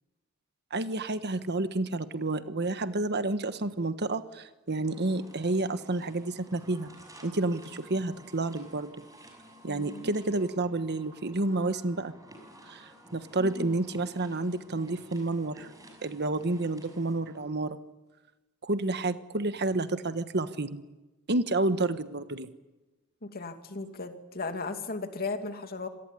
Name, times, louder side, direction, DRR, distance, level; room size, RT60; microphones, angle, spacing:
voice 1, 0.7-6.9 7.2-9.0 9.6-12.1 12.7-15.7 16.0-17.8 18.6-20.8 21.3-22.5, right 2 dB, 50° right, 11 dB, 1.4 m, -30 dB
sound 1, 4.8-17.4, right 1 dB, 15° right, 6.2 m, -53 dB
voice 2, 9.7-10.1 13.4-13.8 23.2-25.9, left 3 dB, 45° left, 6 dB, 2.5 m, -36 dB
27.0 x 19.0 x 10.0 m, 1.1 s
head